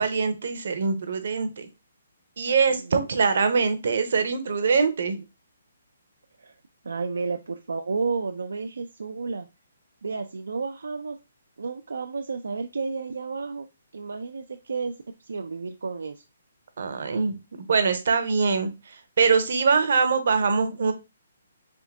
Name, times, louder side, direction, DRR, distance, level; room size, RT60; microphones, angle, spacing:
voice 1, 0.0-1.7 2.4-5.2 16.8-20.9, right 5 dB, 65° right, 8 dB, 0.7 m, -23 dB
voice 2, 2.8-3.1 6.4-6.6 6.8-9.5 10.0-11.2 11.6-13.7 13.9-14.9 15.2-16.2, right 4 dB, 85° right, 5 dB, 0.4 m, -31 dB
3.6 x 2.6 x 3.5 m, 0.27 s
hypercardioid pair, 155°, 0 cm